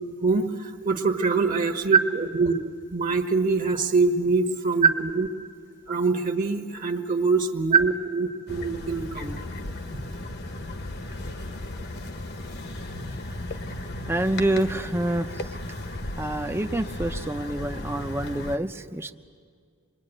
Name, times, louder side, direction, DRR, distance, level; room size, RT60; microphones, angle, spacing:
voice 1, 0.1-2.6 2.9-5.3 5.9-9.4, right 4 dB, 40° right, 4 dB, 1.3 m, -23 dB
sound 1, 8.5-18.6, left 1 dB, 50° left, 1.2 m, -35 dB
voice 2, 14.1-15.3 16.2-19.1, right 1 dB, 10° right, 7 dB, 0.7 m, -27 dB
26.5 x 22.0 x 9.0 m, 2.1 s
head